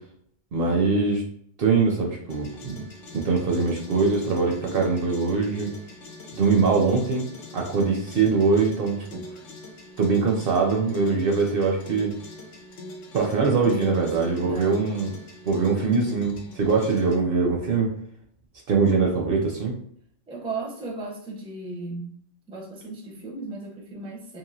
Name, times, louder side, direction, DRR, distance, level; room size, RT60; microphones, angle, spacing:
voice 1, 0.5-1.2 1.6-2.9 3.1-5.7 6.3-7.3 7.5-9.2 10.0-12.2 13.1-15.1 15.4-17.9 18.7-19.8, right 4 dB, 60° right, 0 dB, 0.7 m, -22 dB
sound 1, 2.3-17.2, left 2 dB, 80° left, 0.9 m, -43 dB
voice 2, 13.6-14.8 20.3-22.1 22.5-24.4, right 3 dB, 5° right, -3 dB, 0.4 m, -36 dB
2.9 x 2.5 x 2.6 m, 0.65 s
omnidirectional pair, 1.2 m